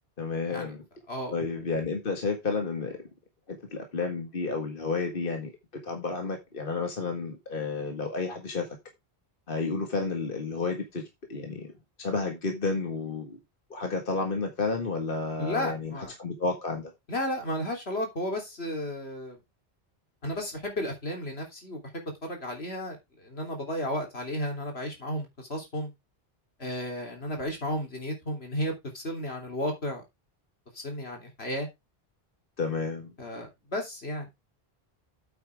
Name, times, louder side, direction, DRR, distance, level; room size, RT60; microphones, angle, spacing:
voice 1, 0.2-0.8 1.3-3.0 3.5-5.5 5.8-8.7 9.5-11.7 12.0-13.4 13.7-16.9 32.6-33.1, left 4 dB, 60° left, 1.9 m, -31 dB
voice 2, 15.4-16.1 17.1-19.4 20.2-25.9 26.6-30.0 30.7-31.7 33.2-34.3, left 1 dB, 80° left, 3.7 m, -33 dB
8.8 x 8.5 x 3.5 m
omnidirectional pair, 1.0 m